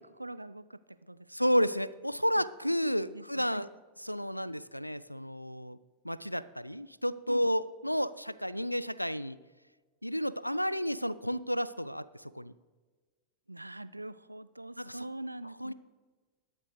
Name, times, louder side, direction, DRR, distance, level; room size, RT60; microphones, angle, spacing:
voice 1, 0.2-1.5 2.4-2.5 3.1-3.6 7.3-7.5 13.5-15.7, right 1 dB, 85° right, 16 dB, 0.4 m, -43 dB
voice 2, 1.3-3.7 4.0-5.8 6.0-9.4 10.0-12.5 14.8-15.1 15.6-15.7, equal, 90° left, 17 dB, 0.3 m, -31 dB
21.0 x 7.5 x 3.2 m, 1.4 s
figure-of-eight pair, 90°, 0 cm